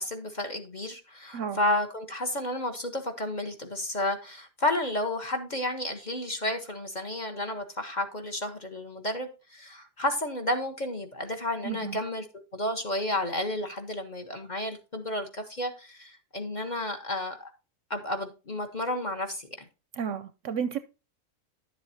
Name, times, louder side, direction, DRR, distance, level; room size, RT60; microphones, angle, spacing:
voice 1, 0.0-12.3 12.5-17.5 17.9-19.5, left 1 dB, 35° left, 0.9 m, -31 dB
voice 2, 11.6-12.0 20.0-20.8, right 7 dB, 65° right, 0.8 m, -32 dB
10.5 x 7.6 x 2.7 m
omnidirectional pair, 1.6 m